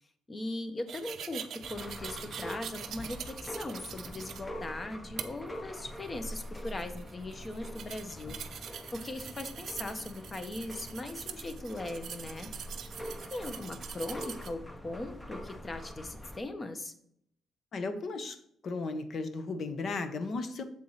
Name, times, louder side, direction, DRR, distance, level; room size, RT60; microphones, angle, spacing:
voice 1, 0.3-12.5 13.3-16.9, left 2 dB, 30° left, 8 dB, 0.9 m, -39 dB
sound 1, 0.9-4.4 5.2-5.3 6.0-14.5, right 8 dB, 65° right, 0.5 m, -44 dB
sound 2, 1.6-16.4, equal, 10° left, 0.6 m, -44 dB
voice 2, 17.7-18.4 18.6-20.6, left 3 dB, 50° left, 9 dB, 0.8 m, -35 dB
7.0 x 4.7 x 4.0 m, 0.68 s
cardioid pair, 90°, 0 cm